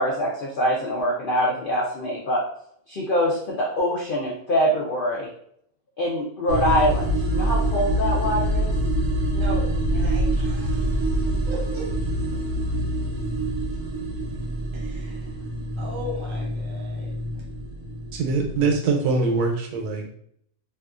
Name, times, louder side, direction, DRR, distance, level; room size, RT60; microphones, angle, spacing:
voice 1, 0.0-2.4 2.9-5.3 6.0-8.7, equal, 85° left, -3 dB, 0.4 m, -24 dB
sound 1, 6.5-18.8, right 1 dB, 65° right, 0.9 m, -25 dB
voice 2, 9.3-11.2 11.5-12.0 12.3-13.2 14.7-15.4 15.8-17.5, equal, 45° right, -3 dB, 0.3 m, -38 dB
voice 3, 18.1-20.1, right 4 dB, 90° right, 2 dB, 1.2 m, -23 dB
2.7 x 2.4 x 2.4 m, 0.68 s
omnidirectional pair, 1.6 m